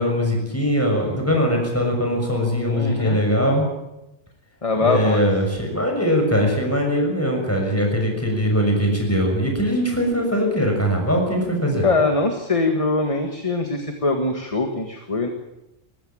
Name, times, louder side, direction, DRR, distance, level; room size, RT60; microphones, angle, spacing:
voice 1, 0.0-3.6 4.8-11.9, equal, 10° left, 1 dB, 6.4 m, -21 dB
voice 2, 2.7-3.2 4.6-5.2 11.8-15.3, left 3 dB, 30° left, 5 dB, 1.8 m, -22 dB
20.5 x 15.5 x 8.8 m, 0.90 s
omnidirectional pair, 1.2 m